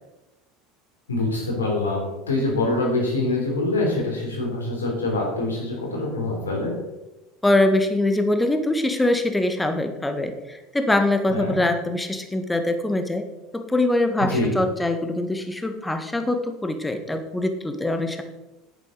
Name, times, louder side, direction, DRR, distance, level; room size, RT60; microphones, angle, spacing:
voice 1, 1.1-6.7 11.3-11.6 14.2-14.5, left 2 dB, 80° left, -1 dB, 3.3 m, -25 dB
voice 2, 7.4-18.2, left 1 dB, 10° left, 7 dB, 1.4 m, -23 dB
11.0 x 9.1 x 3.9 m, 1.0 s
figure-of-eight pair, 70°, 0 cm